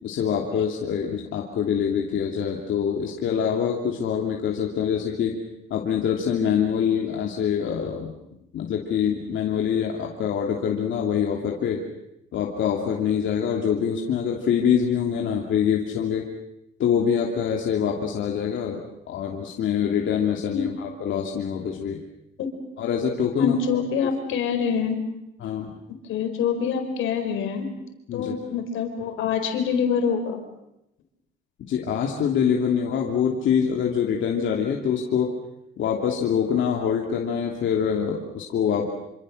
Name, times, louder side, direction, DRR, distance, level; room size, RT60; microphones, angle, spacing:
voice 1, 0.0-5.4 5.7-8.1 8.5-11.8 12.3-16.3 16.8-18.8 19.1-22.0 22.8-23.6 25.4-25.7 28.1-28.3 31.7-35.3 35.8-38.9, left 8 dB, 75° left, 0 dB, 2.9 m, -25 dB
voice 2, 23.3-25.0 25.9-27.7 28.1-30.4, left 6 dB, 90° left, 6 dB, 4.5 m, -25 dB
27.0 x 26.0 x 6.6 m, 0.85 s
cardioid pair, 90°, 20 cm